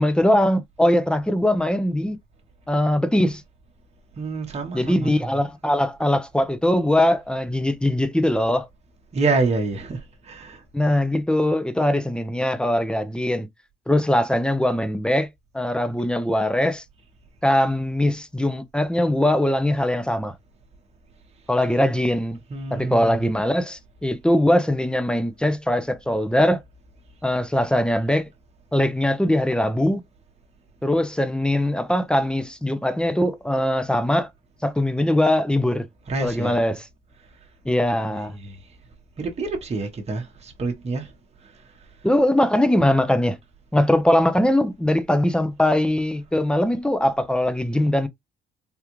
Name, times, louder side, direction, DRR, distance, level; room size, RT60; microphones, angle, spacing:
voice 1, 0.0-2.2 2.7-3.4 4.7-8.7 10.7-13.5 13.9-15.3 15.5-16.8 17.4-20.3 21.5-22.4 22.7-26.6 27.2-28.3 28.7-30.0 30.8-34.3 34.6-35.9 36.2-36.9 37.7-38.3 42.0-43.4 43.7-48.1, left 1 dB, 5° left, 0.5 m, -21 dB
voice 2, 4.2-5.4 9.1-10.6 22.5-23.3 36.1-36.6 38.1-38.6 39.2-41.1, right 3 dB, 30° right, 0.9 m, -27 dB
3.6 x 2.3 x 3.0 m
cardioid pair, 90°, 20 cm